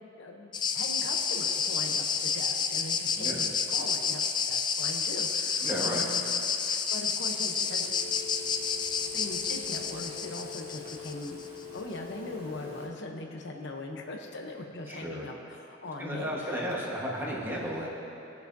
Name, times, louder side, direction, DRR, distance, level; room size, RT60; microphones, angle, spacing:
voice 1, 0.2-6.2 6.6-7.9 9.1-11.4 11.7-16.6, left 2 dB, 65° left, 2 dB, 0.8 m, -40 dB
sound 1, 0.5-11.5, left 6 dB, 25° left, 0.4 m, -30 dB
voice 2, 5.6-6.0 14.9-15.3 16.0-17.9, equal, 10° right, -4 dB, 1.3 m, -33 dB
Telephone, 7.6-12.9, left 7 dB, 50° right, 2.4 m, -43 dB
20.0 x 6.8 x 2.7 m, 2.9 s
head